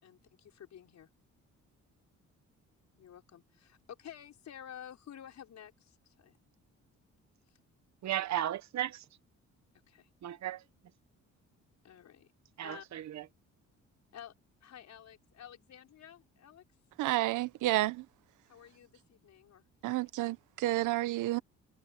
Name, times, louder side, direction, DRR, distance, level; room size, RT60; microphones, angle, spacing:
voice 1, 0.0-1.1 3.0-6.4 9.9-10.1 11.8-12.3 12.6-12.9 14.1-14.3 14.6-16.6 18.5-20.0, left 9 dB, 65° left, 5.8 m, -51 dB
voice 2, 8.0-9.0 10.2-10.6 12.6-13.2, right 12 dB, 65° right, 1.2 m, -35 dB
voice 3, 17.0-18.0 19.8-21.4, right 17 dB, 90° right, 0.9 m, -30 dB
cardioid pair, 90°, 30 cm